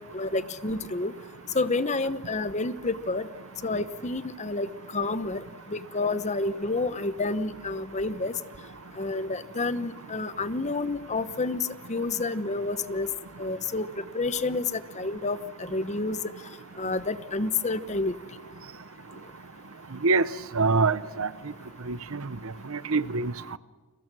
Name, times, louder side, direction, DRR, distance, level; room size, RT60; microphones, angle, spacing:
voice 1, 0.1-1.1 1.5-3.3 3.6-4.7 4.9-5.4 5.7-8.3 9.0-13.1 13.4-13.9 14.1-16.2 16.8-18.1, left 3 dB, 35° left, 0.9 m, -29 dB
voice 2, 20.5-21.3 21.9-22.2 22.7-23.6, right 4 dB, 70° right, 0.8 m, -25 dB
29.5 x 22.5 x 6.2 m
head